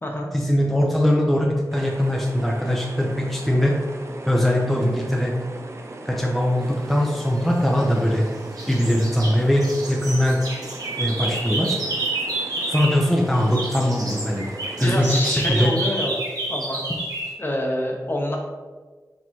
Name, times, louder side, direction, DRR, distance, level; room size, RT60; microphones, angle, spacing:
voice 1, 0.3-3.8 4.2-5.4 6.1-8.3 8.7-10.4 11.0-11.8 12.7-14.4 14.8-15.7, equal, ahead, -2 dB, 0.6 m, -21 dB
sound 1, 1.7-15.3, right 2 dB, 45° right, 0.5 m, -39 dB
sound 2, 7.4-8.2 8.6-13.1 13.3-17.3, right 2 dB, 75° right, 1.1 m, -29 dB
voice 2, 14.8-16.1 16.5-16.8 17.4-18.4, left 1 dB, 35° left, 0 dB, 0.8 m, -26 dB
4.2 x 4.1 x 3.0 m, 1.4 s
wide cardioid pair, 80°, 6 cm